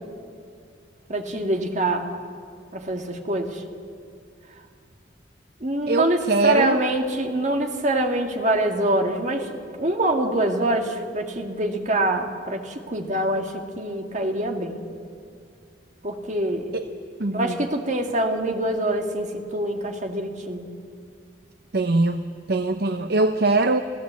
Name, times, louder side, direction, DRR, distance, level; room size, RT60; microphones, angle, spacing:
voice 1, 1.1-2.1 2.7-3.6 5.6-14.8 16.0-16.7 17.3-20.7, right 1 dB, 40° right, 4 dB, 2.1 m, -25 dB
voice 2, 5.9-6.8 16.7-16.8 17.2-17.6 21.7-22.2 22.5-23.8, right 3 dB, 55° right, 9 dB, 0.7 m, -21 dB
27.0 x 16.0 x 8.4 m, 2.3 s
head